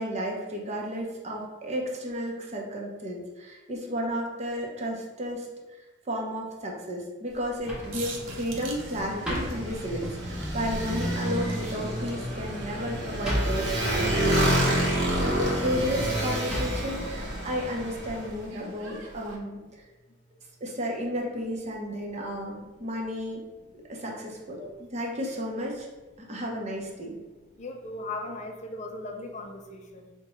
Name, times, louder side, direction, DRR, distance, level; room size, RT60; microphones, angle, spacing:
voice 1, 0.0-5.5 6.1-19.6 20.6-23.4 23.9-25.9 26.3-27.2, equal, 35° right, -2 dB, 0.7 m, -33 dB
sound 1, 7.3-18.5, equal, 5° right, 0.9 m, -38 dB
Motorcycle, 7.6-18.3, equal, 60° right, 0.9 m, -29 dB
sound 2, 7.9-19.4, right 1 dB, 90° right, 0.7 m, -44 dB
voice 2, 27.6-30.1, left 2 dB, 35° left, 4 dB, 0.3 m, -38 dB
4.8 x 2.2 x 3.0 m, 1.2 s
head